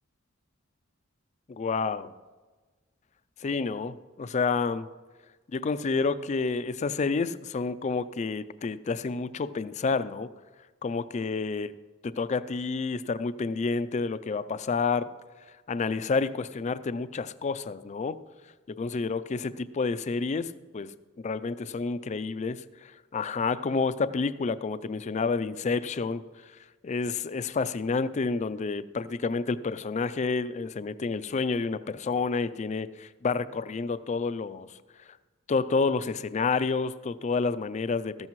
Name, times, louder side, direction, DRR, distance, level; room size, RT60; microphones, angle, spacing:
voice 1, 1.5-2.1 3.4-4.9 5.5-10.3 10.8-11.7 12.2-15.1 15.7-18.2 18.7-20.9 21.2-26.2 26.8-34.7 35.5-38.3, left 4 dB, 35° left, 14 dB, 0.4 m, -29 dB
14.0 x 13.0 x 3.1 m, 1.3 s
head